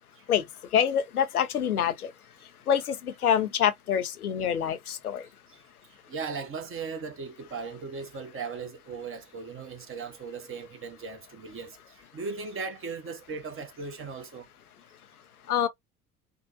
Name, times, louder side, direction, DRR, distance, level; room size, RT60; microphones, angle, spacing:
voice 1, 0.3-2.1 2.7-5.3 15.5-15.7, left 9 dB, 85° left, 0.5 m, -26 dB
voice 2, 6.1-14.5, right 5 dB, 30° right, 0.9 m, -38 dB
3.5 x 2.0 x 2.4 m
figure-of-eight pair, 60°, 44 cm